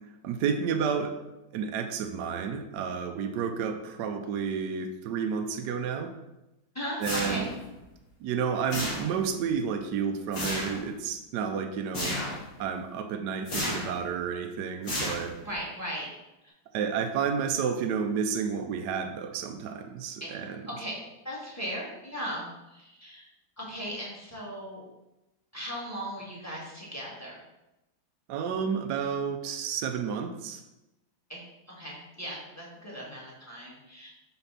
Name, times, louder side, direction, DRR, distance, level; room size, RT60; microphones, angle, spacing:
voice 1, 0.2-1.2 1.5-6.1 7.0-7.4 8.2-12.2 12.6-15.4 16.7-20.6 28.3-30.6, right 6 dB, 70° right, 6 dB, 1.0 m, -31 dB
voice 2, 6.7-7.5 15.4-16.1 16.4-16.5 20.2-20.4 20.7-23.3 23.6-24.8 25.5-27.4 31.3-34.1, equal, 10° left, -4 dB, 1.3 m, -38 dB
sound 1, 7.0-7.7 8.7-9.4 10.3-10.8 11.9-12.5 13.5-14.0 14.8-15.5, left 1 dB, 45° left, 2.4 m, -32 dB
5.7 x 3.3 x 5.6 m, 0.96 s
omnidirectional pair, 2.1 m